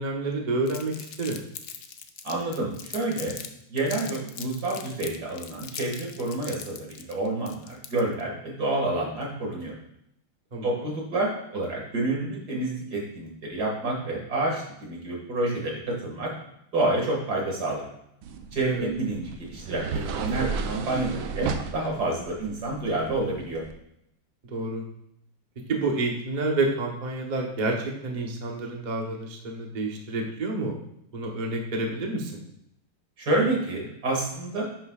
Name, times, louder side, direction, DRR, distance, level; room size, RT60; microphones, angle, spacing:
voice 1, 0.0-1.4 10.5-10.9 18.7-18.9 24.5-24.8 25.7-30.7 31.1-32.4, right 2 dB, 35° right, 0 dB, 0.7 m, -29 dB
Crumpling crinkling, 0.7-3.5 3.8-8.2, left 8 dB, 65° left, 1.0 m, -40 dB
voice 2, 2.2-3.3 3.7-9.8 10.6-16.3 16.7-17.9 18.5-23.6 33.2-34.6, right 2 dB, 50° right, -1 dB, 2.5 m, -28 dB
sound 1, 18.2-23.7, right 5 dB, 85° right, 1.5 m, -34 dB
10.5 x 7.7 x 2.4 m, 0.77 s
omnidirectional pair, 2.2 m